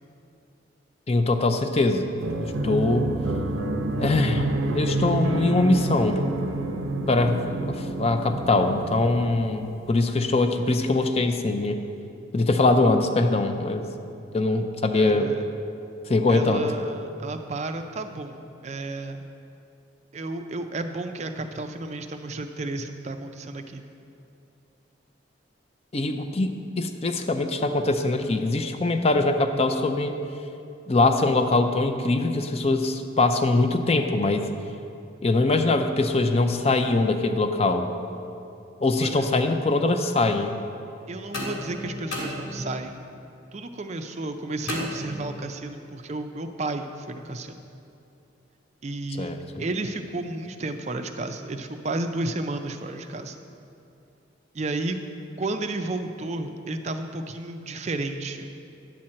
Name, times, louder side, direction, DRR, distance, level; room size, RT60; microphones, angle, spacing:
voice 1, 1.1-2.1 2.4-3.1 4.0-4.5 4.7-6.2 7.1-11.8 12.3-13.9 14.3-15.3 16.1-16.6 25.9-30.2 30.9-34.4 35.2-37.9 38.8-40.5 49.2-49.6, left 2 dB, 30° left, 7 dB, 0.5 m, -22 dB
sound 1, 2.2-9.8, right 2 dB, 90° right, 0.6 m, -28 dB
voice 2, 14.9-15.5 16.3-19.2 20.1-23.8 39.0-39.3 41.1-43.0 43.5-47.6 48.8-49.3 49.6-53.4 54.5-55.0 55.4-58.5, right 2 dB, 35° right, 7 dB, 0.4 m, -32 dB
sound 2, 41.3-43.0 44.7-45.6, left 1 dB, 90° left, 2.2 m, -34 dB
10.5 x 4.3 x 7.5 m, 2.6 s
head